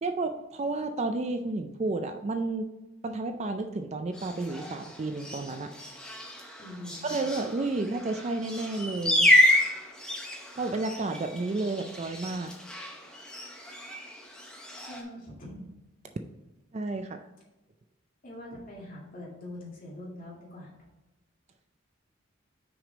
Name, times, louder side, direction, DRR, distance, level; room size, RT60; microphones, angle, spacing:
voice 1, 0.0-2.7 3.0-5.7 7.0-9.3 10.5-12.5 16.7-17.2, right 3 dB, 30° right, 7 dB, 0.3 m, -31 dB
sound 1, 4.1-15.0, left 1 dB, 5° left, 0.7 m, -29 dB
voice 2, 6.6-7.1 14.8-15.7 18.2-20.7, left 1 dB, 40° left, -4 dB, 2.2 m, -43 dB
6.1 x 5.0 x 3.9 m, 1.1 s
head